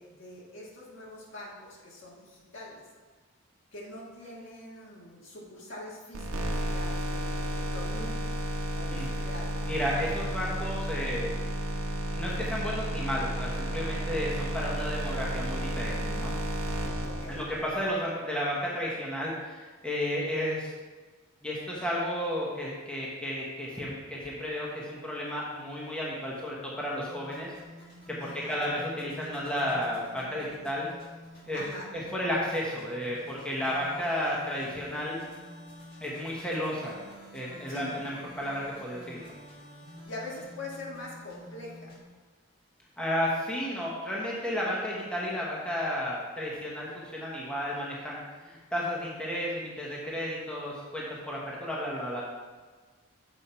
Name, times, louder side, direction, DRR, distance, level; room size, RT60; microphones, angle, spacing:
voice 1, 0.0-2.8 3.7-8.1 8.7-9.6 17.0-17.4 28.2-28.6 31.5-31.9 37.7-38.0 40.0-42.0, left 1 dB, 65° left, -4 dB, 1.8 m, -43 dB
sound 1, 6.1-17.8, right 1 dB, 90° right, 1.0 m, -32 dB
voice 2, 9.7-11.3 12.1-16.3 17.3-20.7 21.4-27.5 28.1-30.9 31.5-31.6 31.9-35.2 36.0-37.0 37.3-39.2 43.0-52.2, equal, 5° left, -5 dB, 1.1 m, -32 dB
sound 2, 27.0-42.0, left 1 dB, 45° left, 1.7 m, -49 dB
6.9 x 5.4 x 4.4 m, 1.4 s
head